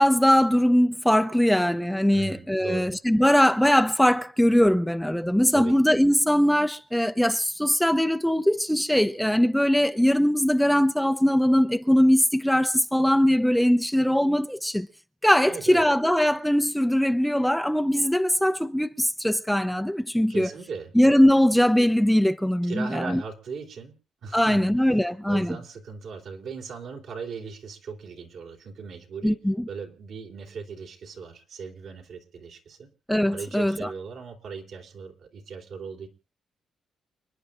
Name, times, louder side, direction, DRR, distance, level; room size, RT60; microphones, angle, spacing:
voice 1, 0.0-14.9 15.2-20.5 21.0-23.2 24.3-25.6 29.2-29.5 33.1-33.9, equal, ahead, 0.6 m, -21 dB
voice 2, 2.1-2.9 5.5-5.8 15.5-15.9 20.3-20.9 22.6-24.0 24.2-29.4 29.7-32.9 33.3-36.1, right 5 dB, 70° right, 3.5 m, -38 dB
29.5 x 10.0 x 2.5 m
cardioid pair, 105°, 0 cm